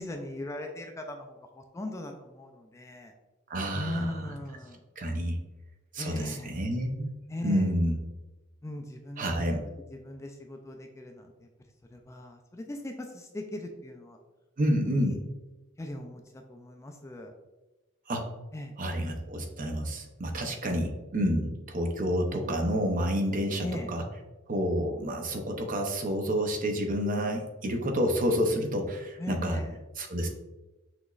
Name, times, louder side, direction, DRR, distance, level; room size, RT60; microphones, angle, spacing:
voice 1, 0.0-3.1 3.7-4.8 6.0-6.5 7.3-7.7 8.6-9.6 9.9-11.5 11.9-14.2 15.0-15.1 15.8-17.3 18.5-18.7 23.6-23.9 29.2-29.8, left 1 dB, 15° left, 3 dB, 0.3 m, -39 dB
voice 2, 3.5-4.2 5.0-5.4 5.9-7.2 7.4-8.0 9.2-9.6 14.6-15.2 18.1-18.3 18.8-24.0 24.5-29.6 30.0-30.3, equal, 45° right, 3 dB, 0.6 m, -29 dB
6.0 x 3.0 x 2.4 m, 1.1 s
head